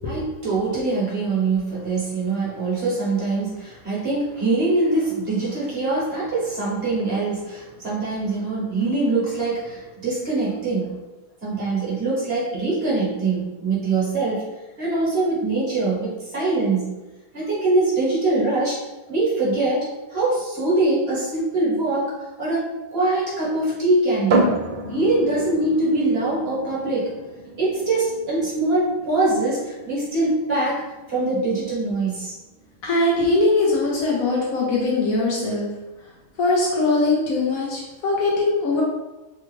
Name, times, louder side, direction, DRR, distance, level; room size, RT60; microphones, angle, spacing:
voice 1, 0.0-11.0 11.4-14.4 14.8-16.9 17.3-18.8 19.1-24.6 24.9-27.1 27.6-30.8 31.1-32.3, right 2 dB, 45° right, -6 dB, 1.2 m, -23 dB
sound 1, 24.3-37.8, right 2 dB, 85° right, 0.4 m, -32 dB
voice 2, 32.8-35.7 36.4-38.8, left 2 dB, 75° left, -4 dB, 1.1 m, -21 dB
3.4 x 2.3 x 3.0 m, 1.1 s
omnidirectional pair, 1.5 m